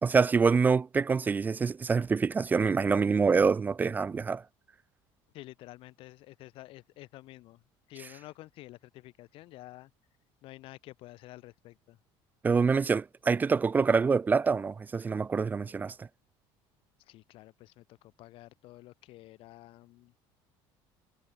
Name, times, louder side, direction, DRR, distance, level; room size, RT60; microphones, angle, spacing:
voice 1, 0.0-4.4 12.4-16.1, right 5 dB, 20° right, 0.3 m, -26 dB
voice 2, 5.3-7.6 7.9-9.9 10.4-12.0 17.1-20.1, left 17 dB, 65° left, 4.0 m, -50 dB
cardioid pair, 130°, 10 cm